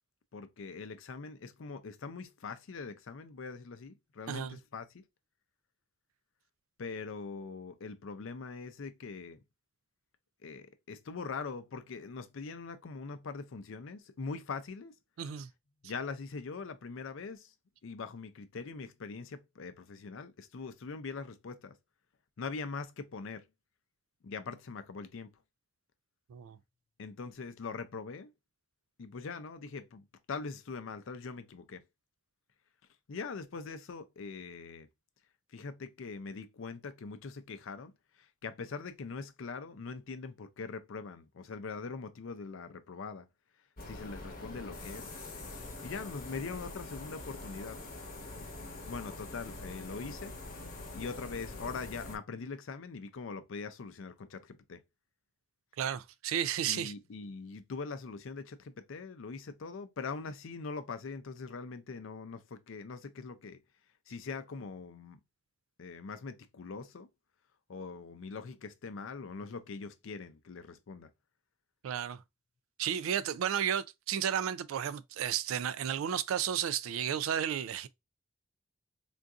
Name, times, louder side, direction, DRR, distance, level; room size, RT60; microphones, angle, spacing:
voice 1, 0.3-5.0 6.8-9.4 10.4-15.0 15.8-17.5 17.8-21.8 22.4-23.5 24.2-25.4 27.0-28.3 29.0-31.8 33.1-34.9 35.5-43.3 43.8-45.1 45.8-47.8 48.9-50.3 50.9-54.8 56.7-63.6 64.1-65.2 65.8-67.1 67.7-71.1, left 4 dB, 70° left, 0.5 m, -42 dB
voice 2, 4.3-4.6 15.2-15.5 26.3-26.6 55.8-56.9 71.8-72.2 72.8-77.9, right 9 dB, 80° right, 0.3 m, -33 dB
sound 1, 43.8-52.2, left 2 dB, 45° left, 0.9 m, -44 dB
3.8 x 2.6 x 2.3 m
head